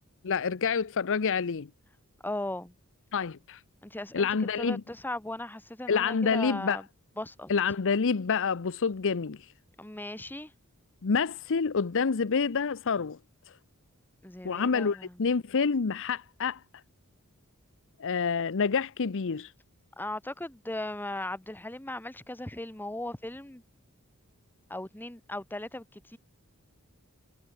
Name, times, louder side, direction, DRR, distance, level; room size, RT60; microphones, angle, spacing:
voice 1, 0.2-1.7 3.1-3.6 4.1-4.8 5.9-6.8 7.5-9.5 11.0-13.2 14.4-16.6 18.0-19.5, left 5 dB, 60° left, 0.7 m, -27 dB
voice 2, 2.2-2.7 3.8-4.3 4.6-6.8 7.2-7.5 9.8-10.5 14.2-15.1 20.0-23.6 24.7-26.2, left 1 dB, 10° left, 1.2 m, -37 dB
head